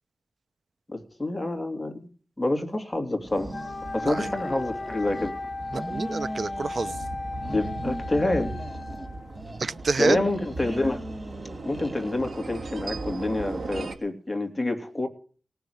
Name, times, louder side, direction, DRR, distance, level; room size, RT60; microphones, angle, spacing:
voice 1, 0.9-1.9 2.4-3.5 3.9-5.3 7.5-8.5 10.0-11.0 11.6-15.1, left 2 dB, 10° left, 3.0 m, -27 dB
sound 1, 3.2-14.0, right 2 dB, 75° right, 2.1 m, -38 dB
sound 2, 3.3-5.3 5.6-7.1 7.3-9.1 9.3-12.5, equal, 20° right, 2.2 m, -40 dB
Wind instrument woodwind instrument, 3.5-9.4, left 2 dB, 55° left, 1.5 m, -36 dB
voice 2, 5.7-7.0 9.6-10.2, right 4 dB, 55° right, 0.8 m, -27 dB
18.0 x 6.9 x 9.8 m
wide cardioid pair, 135°, 0 cm